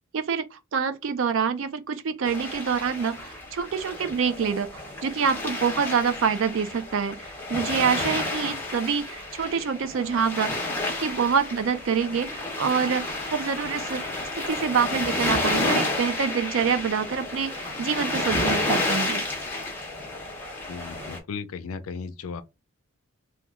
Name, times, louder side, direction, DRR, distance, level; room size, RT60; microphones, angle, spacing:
voice 1, 0.1-10.5 11.0-13.0 13.3-14.0 14.4-19.2, right 6 dB, 60° right, 0.4 m, -26 dB
sound 1, 2.2-21.2, left 2 dB, 10° left, 0.7 m, -31 dB
voice 2, 20.7-22.4, left 5 dB, 75° left, 0.4 m, -35 dB
2.9 x 2.2 x 3.4 m
head